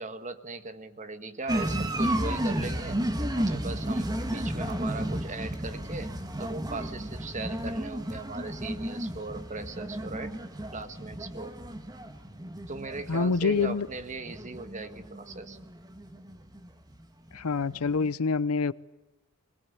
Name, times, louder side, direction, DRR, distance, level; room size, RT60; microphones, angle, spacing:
voice 1, 0.0-3.0 3.3-10.4 10.7-11.5 12.7-15.6, right 3 dB, 35° right, 1.6 m, -39 dB
sound 1, 1.5-17.0 17.3-18.1, right 1 dB, 20° right, 1.6 m, -33 dB
voice 2, 13.1-13.9 17.3-18.7, left 4 dB, 75° left, 0.7 m, -26 dB
22.0 x 20.5 x 8.5 m
head